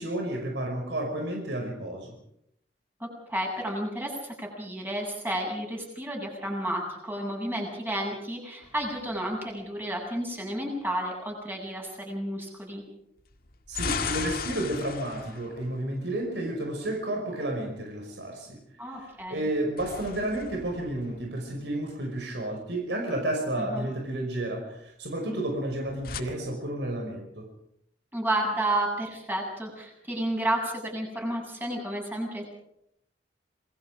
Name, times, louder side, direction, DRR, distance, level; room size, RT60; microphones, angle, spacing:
voice 1, 0.0-2.1 13.7-18.6 18.9-27.5, right 1 dB, 80° right, 1 dB, 5.6 m, -31 dB
voice 2, 3.0-12.8 18.8-19.5 23.6-23.9 28.1-32.4, right 1 dB, 10° right, 0 dB, 7.6 m, -31 dB
sound 1, 8.6-9.7 13.3-16.6 19.4-21.9 25.6-26.2, left 5 dB, 55° left, 1.9 m, -37 dB
27.5 x 21.5 x 5.1 m, 0.76 s
head